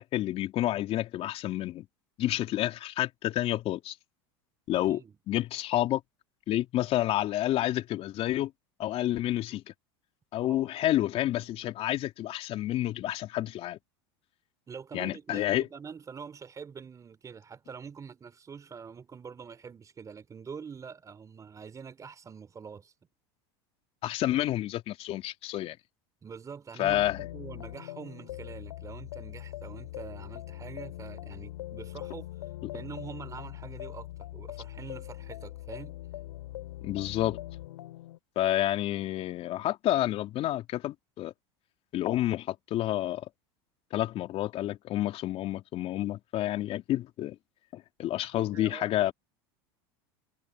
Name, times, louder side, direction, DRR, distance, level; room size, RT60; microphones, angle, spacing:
voice 1, 0.0-1.8 2.2-3.9 4.7-5.0 5.3-6.0 6.5-8.5 8.8-9.6 10.3-13.8 14.9-15.7 24.0-25.8 26.8-27.2 36.8-37.4 38.3-41.3 41.9-43.3 43.9-47.4 47.7-49.1, left 14 dB, 45° left, 3.5 m, -29 dB
voice 2, 4.7-5.1 10.4-10.7 14.7-22.9 26.2-27.0 27.3-32.3 32.7-36.0 48.3-49.1, right 6 dB, 25° right, 3.8 m, -45 dB
sound 1, 26.9-38.2, left 15 dB, 85° left, 5.1 m, -42 dB
supercardioid pair, 110°, 14 cm